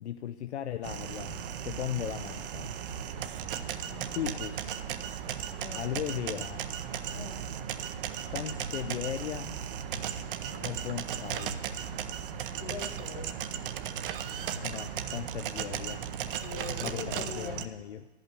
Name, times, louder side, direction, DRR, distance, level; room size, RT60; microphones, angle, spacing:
voice 1, 0.0-2.7 4.0-4.8 5.8-6.6 8.2-9.5 10.6-11.6 14.6-16.0 16.8-18.1, left 10 dB, 90° left, 9 dB, 0.5 m, -37 dB
sound 1, 0.8-17.7, right 8 dB, 55° right, 0.7 m, -36 dB
voice 2, 10.5-10.8 12.6-13.3 16.4-17.6, left 6 dB, 50° left, 5 dB, 1.7 m, -42 dB
10.5 x 5.7 x 8.3 m, 1.2 s
hypercardioid pair, 130°, 33 cm